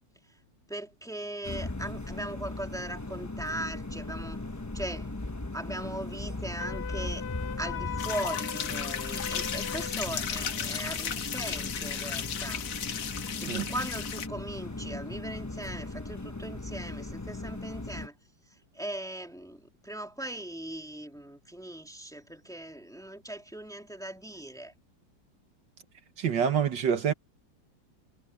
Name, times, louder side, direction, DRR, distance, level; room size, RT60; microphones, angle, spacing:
voice 1, 0.7-4.5 4.7-5.1 5.5-7.2 7.6-12.7 13.4-18.1 18.5-24.7, right 1 dB, ahead, 2.8 m, -39 dB
sound 1, 1.4-18.1, left 2 dB, 25° left, 0.3 m, -38 dB
Wind instrument woodwind instrument, 6.6-10.0, left 9 dB, 55° left, 2.0 m, -39 dB
sound 2, 8.0-14.3, left 8 dB, 90° left, 2.1 m, -35 dB
voice 2, 26.2-27.1, right 8 dB, 70° right, 2.0 m, -26 dB
omnidirectional pair, 2.0 m